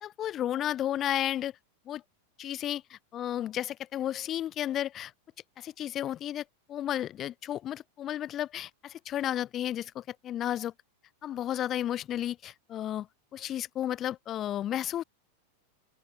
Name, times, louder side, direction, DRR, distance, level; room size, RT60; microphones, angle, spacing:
voice 1, 0.0-1.5 1.9-2.0 2.4-5.1 5.6-10.7 11.2-13.1 13.3-15.0, left 11 dB, 30° left, 0.6 m, -33 dB
open air
figure-of-eight pair, 90°, 0 cm